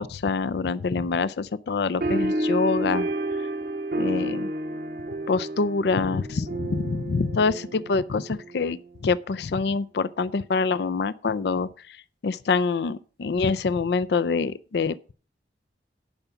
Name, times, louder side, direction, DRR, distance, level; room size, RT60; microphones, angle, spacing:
voice 1, 0.0-3.1 4.0-4.5 5.3-15.1, left 4 dB, 65° left, 0.4 m, -26 dB
sound 1, 2.0-8.9, right 1 dB, 50° right, 0.8 m, -30 dB
10.5 x 5.6 x 7.0 m
head